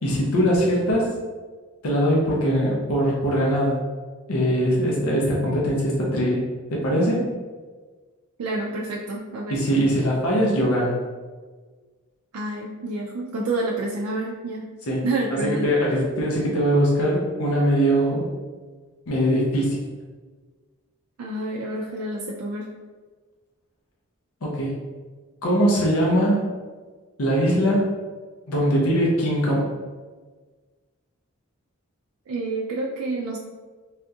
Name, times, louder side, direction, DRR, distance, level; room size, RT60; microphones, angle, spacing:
voice 1, 0.0-1.1 1.8-3.8 4.3-6.4 6.7-7.3 9.5-11.0 14.9-15.0 15.4-18.3 19.1-19.8 24.4-24.8 25.4-26.5 27.2-27.9 28.5-29.7, equal, 80° left, -3 dB, 0.6 m, -21 dB
voice 2, 8.4-9.6 12.3-14.7 15.0-15.7 21.2-22.7 32.3-33.4, right 2 dB, 90° right, -3 dB, 0.4 m, -28 dB
3.5 x 2.3 x 2.7 m, 1.4 s
head